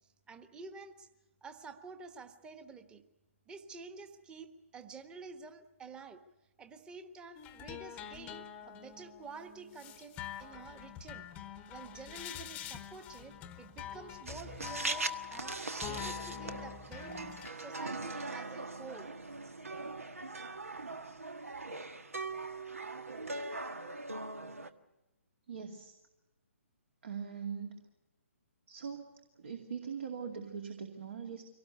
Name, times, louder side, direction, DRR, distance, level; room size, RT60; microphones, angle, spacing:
voice 1, 0.3-1.1 1.4-3.0 3.5-6.2 6.6-11.3 11.7-19.1, right 4 dB, 10° right, 8 dB, 1.3 m, -49 dB
sound 1, 7.3-17.5, left 10 dB, 20° left, 1.0 m, -45 dB
sound 2, 14.3-24.7, right 3 dB, 80° right, 1.5 m, -41 dB
voice 2, 25.5-25.9 27.0-27.8 28.7-29.1 29.4-31.4, right 6 dB, 60° right, 3 dB, 2.5 m, -41 dB
24.0 x 18.0 x 8.1 m, 1.0 s
figure-of-eight pair, 135°, 8 cm